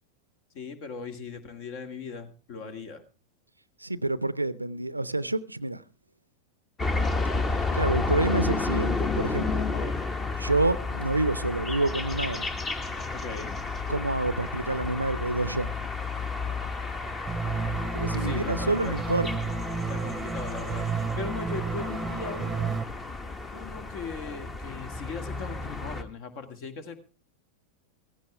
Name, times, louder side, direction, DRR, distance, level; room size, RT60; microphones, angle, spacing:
voice 1, 0.5-3.0 9.7-10.0 13.1-13.6 18.2-19.0 19.9-22.8 23.5-27.0, left 5 dB, 45° left, 2.0 m, -39 dB
voice 2, 3.8-5.8 7.7-9.7 10.4-12.5 13.9-15.7 17.9-19.4, right 2 dB, 85° right, 0.6 m, -28 dB
sound 1, 6.8-26.0, left 3 dB, 20° left, 1.2 m, -31 dB
sound 2, 17.3-22.8, right 5 dB, 15° right, 0.9 m, -32 dB
15.5 x 15.0 x 3.3 m
figure-of-eight pair, 90°, 0 cm